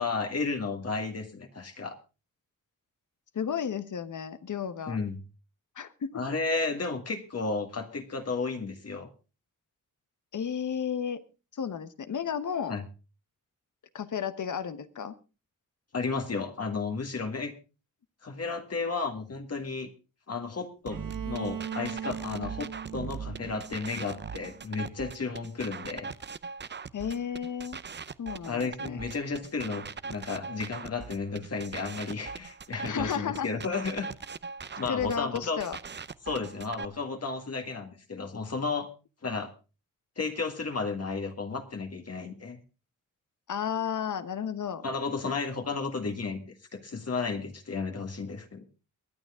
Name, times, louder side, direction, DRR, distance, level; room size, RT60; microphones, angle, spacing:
voice 1, 0.0-2.0 4.9-5.2 6.1-9.1 12.7-12.8 15.9-17.5 18.2-19.9 20.3-26.1 28.5-34.1 34.8-35.6 36.3-38.9 39.2-39.5 40.2-42.6 44.8-48.6, left 4 dB, 50° left, 4 dB, 1.8 m, -33 dB
voice 2, 3.3-5.0 5.8-6.2 10.3-11.2 11.5-12.7 13.9-15.1 26.9-27.8 28.2-29.0 32.8-33.5 34.9-35.8 43.5-44.8, left 7 dB, 65° left, 12 dB, 1.1 m, -33 dB
sound 1, 20.9-36.9, right 5 dB, 35° right, 0.6 m, -41 dB
Bowed string instrument, 20.9-24.7, right 8 dB, 75° right, 1.5 m, -40 dB
23.0 x 9.1 x 3.7 m, 0.32 s
cardioid pair, 85°, 33 cm